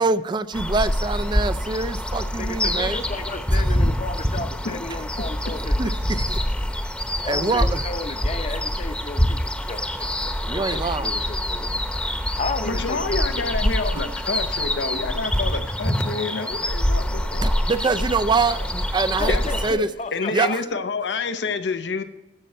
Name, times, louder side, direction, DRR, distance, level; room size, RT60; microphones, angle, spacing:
voice 1, 0.0-3.0 3.5-3.7 5.8-6.4 7.2-7.8 10.4-11.1 17.4-19.4 19.6-19.9 20.3-20.6, right 3 dB, 25° right, 13 dB, 0.4 m, -24 dB
sound 1, 0.5-19.7, equal, 5° left, 0.9 m, -25 dB
voice 2, 2.4-6.2 7.2-11.8 12.4-13.5 13.8-13.9 19.1-20.6, left 3 dB, 40° left, 8 dB, 0.8 m, -33 dB
voice 3, 12.7-17.5 19.3-19.4 20.1-22.0, left 4 dB, 90° left, 9 dB, 0.7 m, -28 dB
12.0 x 7.5 x 4.3 m, 1.0 s
head